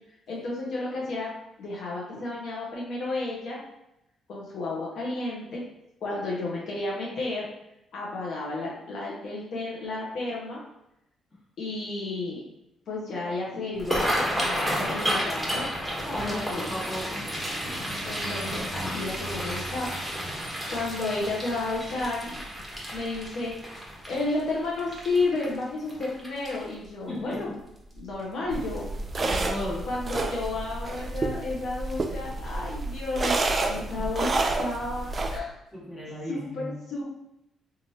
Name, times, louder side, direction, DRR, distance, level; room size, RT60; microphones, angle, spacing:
voice 1, 0.3-1.3 1.6-3.6 4.3-5.6 6.0-7.5 7.9-10.6 11.6-12.4 12.9-15.7 16.1-16.7 18.0-19.9 20.7-22.4 22.9-23.5 24.1-27.5 28.0-28.9 29.9-33.4 33.7-34.3 34.6-35.5 36.3-37.1, left 2 dB, 70° left, -5 dB, 0.7 m, -32 dB
sound 1, 13.7-26.9 27.3-27.6 27.9-28.4 28.8-28.9 30.1-30.3 30.7-30.8 31.3-31.4, equal, 5° right, 1.0 m, -32 dB
voice 2, 16.0-17.3 27.1-27.5 29.2-29.9 35.7-36.7, left 1 dB, 20° left, -6 dB, 1.5 m, -35 dB
sound 2, 28.5-35.4, right 2 dB, 35° right, 0.3 m, -29 dB
3.0 x 2.4 x 2.7 m, 0.85 s
cardioid pair, 90°, 0 cm